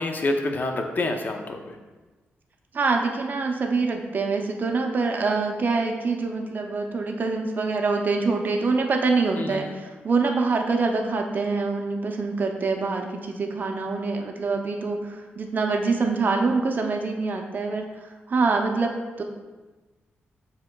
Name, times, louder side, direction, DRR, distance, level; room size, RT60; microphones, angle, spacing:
voice 1, 0.0-1.8 9.4-9.6, left 2 dB, 45° left, 4 dB, 0.5 m, -27 dB
voice 2, 2.7-19.2, right 4 dB, 45° right, 3 dB, 0.5 m, -25 dB
7.2 x 2.8 x 2.2 m, 1.2 s
cardioid pair, 95°, 4 cm